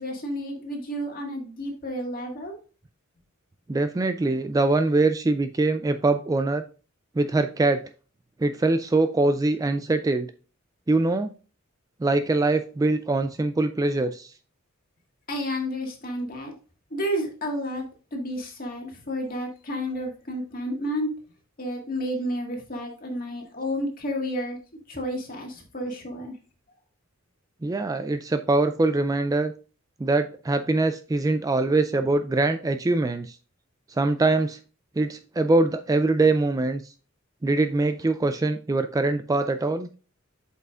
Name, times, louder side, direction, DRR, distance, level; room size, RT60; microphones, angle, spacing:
voice 1, 0.0-2.6 15.3-16.5 16.9-17.9 18.1-21.1 21.6-24.6 24.9-26.3, equal, 45° left, 1 dB, 1.9 m, -31 dB
voice 2, 3.7-6.6 7.2-7.8 8.4-10.3 10.9-11.3 12.0-14.3 27.6-29.5 30.0-33.4 34.0-34.6 35.0-36.8 37.4-39.9, right 2 dB, 15° right, 9 dB, 0.3 m, -23 dB
7.7 x 5.6 x 2.4 m, 0.36 s
head